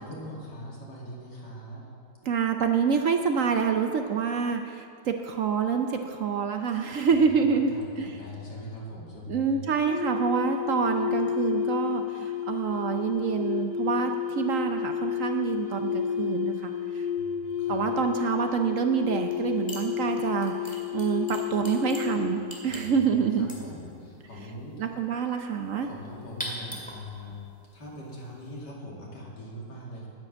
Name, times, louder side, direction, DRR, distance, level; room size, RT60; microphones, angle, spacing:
voice 1, 0.0-1.8 7.4-9.6 17.2-17.8 22.6-24.8 25.8-27.4 27.7-30.1, equal, 85° left, -4 dB, 3.1 m, -41 dB
voice 2, 2.2-8.2 9.3-17.1 17.7-23.5 24.8-25.9, right 6 dB, 60° right, 5 dB, 0.9 m, -27 dB
sound 1, 9.9-22.6, left 9 dB, 55° left, 0.4 m, -31 dB
sound 2, 19.2-19.4 19.7-28.6, equal, 5° left, 2.0 m, -43 dB
10.0 x 9.6 x 7.4 m, 2.4 s
omnidirectional pair, 1.8 m